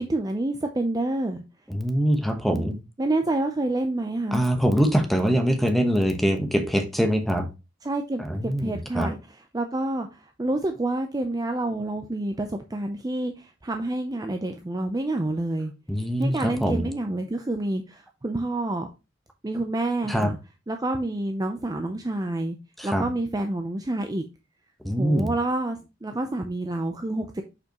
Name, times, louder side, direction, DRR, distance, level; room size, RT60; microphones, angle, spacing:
voice 1, 0.0-1.4 2.5-4.4 7.8-15.7 16.2-18.9 19.4-20.4 20.7-22.6 22.8-24.3 25.0-27.4, right 2 dB, 20° right, 0.5 m, -28 dB
voice 2, 1.7-2.8 4.3-7.5 8.2-9.1 15.9-16.9 20.1-20.3 22.8-23.0 24.8-25.3, equal, ahead, 1.0 m, -23 dB
6.9 x 5.5 x 2.9 m
head